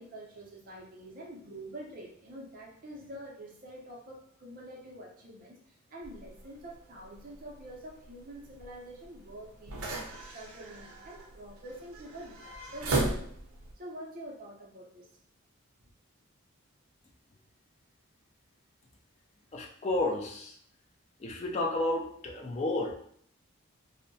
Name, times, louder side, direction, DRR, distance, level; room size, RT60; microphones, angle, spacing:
voice 1, 0.0-13.3 13.7-15.1, right 1 dB, 40° right, -2 dB, 0.5 m, -46 dB
sound 1, 6.0-13.7, right 2 dB, 85° right, 0.6 m, -38 dB
voice 2, 19.5-20.6 21.2-22.9, left 2 dB, 30° left, 1 dB, 0.3 m, -31 dB
2.6 x 2.1 x 2.6 m, 0.63 s
head